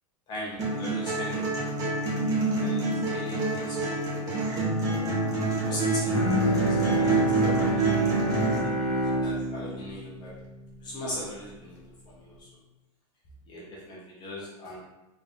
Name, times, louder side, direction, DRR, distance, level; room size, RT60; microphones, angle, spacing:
voice 1, 0.3-1.5 2.3-4.3 5.7-8.1 8.8-8.9 9.2-10.3 10.8-11.8 12.1-12.5 13.5-14.8, left 1 dB, 25° left, -5 dB, 0.8 m, -39 dB
sound 1, 0.6-8.6, right 2 dB, 20° right, 0.9 m, -27 dB
Bowed string instrument, 6.1-11.5, right 1 dB, 65° left, 1.2 m, -28 dB
3.7 x 2.6 x 3.5 m, 1.0 s
supercardioid pair, 160°, 17 cm